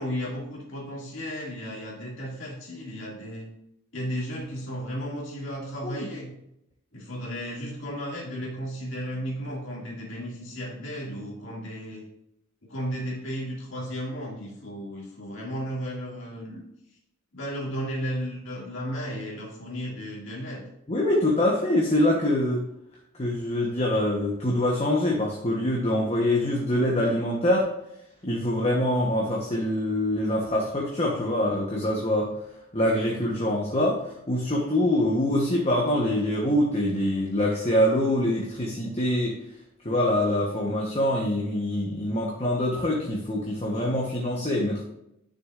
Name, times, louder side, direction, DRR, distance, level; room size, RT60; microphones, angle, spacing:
voice 1, 0.0-3.5 3.9-6.3 6.9-12.0 12.7-16.6 17.3-20.6, equal, 60° left, -4 dB, 2.2 m, -34 dB
voice 2, 20.9-22.6 23.2-27.7 28.2-32.3 32.7-34.0 34.3-39.4 39.8-44.8, left 1 dB, 30° left, -2 dB, 1.0 m, -24 dB
10.5 x 6.4 x 2.5 m, 0.81 s
head